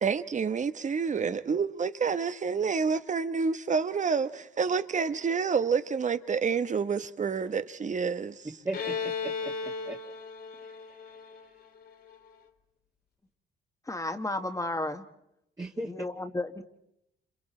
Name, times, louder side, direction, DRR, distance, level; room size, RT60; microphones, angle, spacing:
voice 1, 0.0-8.5, right 5 dB, 40° right, 1.1 m, -28 dB
voice 2, 8.6-10.0 10.6-11.6 15.6-15.9, right 2 dB, 20° right, 1.9 m, -39 dB
Bowed string instrument, 8.7-12.3, left 5 dB, 55° left, 2.8 m, -36 dB
voice 3, 13.9-15.0 15.9-16.6, left 2 dB, 15° left, 1.5 m, -33 dB
29.5 x 27.5 x 4.4 m
cardioid pair, 90°, 20 cm